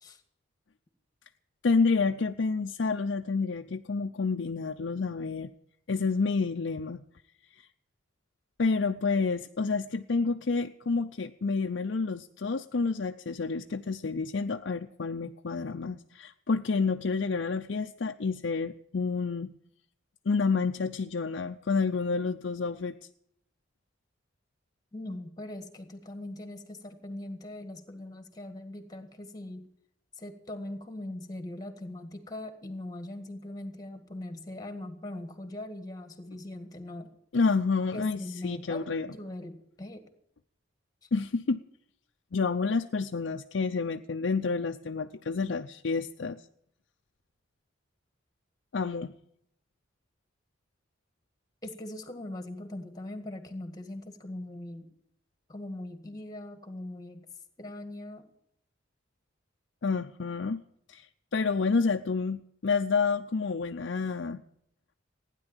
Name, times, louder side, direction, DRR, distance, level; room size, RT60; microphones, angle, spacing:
voice 1, 1.6-5.5 5.9-7.0 7.6-7.7 8.6-19.5 20.3-23.0 37.3-39.1 41.1-41.6 42.3-46.4 48.7-49.1 59.8-60.6 60.9-64.4, left 4 dB, 65° left, 5 dB, 0.5 m, -29 dB
voice 2, 24.9-29.7 30.2-37.1 37.9-40.1 41.0-41.1 51.6-54.9 55.5-57.3 57.6-58.3, left 1 dB, 20° left, 7 dB, 1.8 m, -41 dB
16.0 x 10.0 x 8.8 m, 0.73 s
head